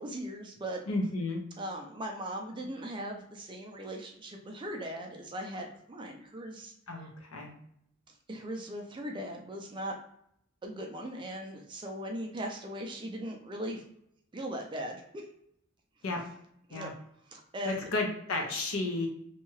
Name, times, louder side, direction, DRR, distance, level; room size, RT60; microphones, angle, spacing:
voice 1, 0.0-0.8 1.6-6.7 8.3-9.9 10.6-13.8 14.3-15.2 16.7-16.9 17.3-17.9, right 1 dB, 20° right, 2 dB, 0.3 m, -39 dB
voice 2, 0.9-1.4 6.9-7.5 16.0-16.2 16.7-16.9 17.6-19.1, left 2 dB, 70° left, 2 dB, 0.6 m, -32 dB
2.7 x 2.3 x 3.0 m, 0.72 s
head